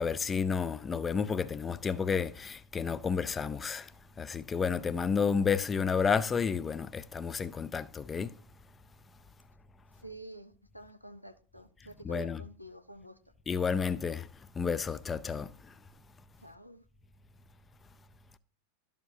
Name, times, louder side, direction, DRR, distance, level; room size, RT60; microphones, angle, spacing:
voice 1, 0.0-3.9 4.2-8.3 12.0-12.4 13.5-14.3 14.6-15.7, left 6 dB, 15° left, 0.4 m, -31 dB
voice 2, 10.0-13.2 16.4-16.8, right 1 dB, 90° left, 0.6 m, -49 dB
12.0 x 7.2 x 2.8 m
figure-of-eight pair, 90°, 0 cm